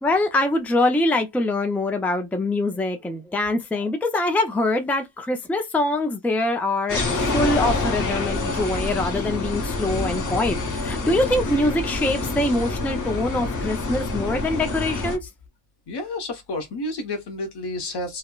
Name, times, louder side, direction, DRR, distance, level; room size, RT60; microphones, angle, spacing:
voice 1, 0.0-7.0 7.3-15.2, left 2 dB, 5° left, 0.4 m, -24 dB
sound 1, 6.9-15.2, left 3 dB, 45° left, 0.8 m, -26 dB
voice 2, 15.9-18.2, left 2 dB, 75° left, 1.0 m, -30 dB
3.0 x 2.0 x 2.2 m
wide cardioid pair, 170°, 40 cm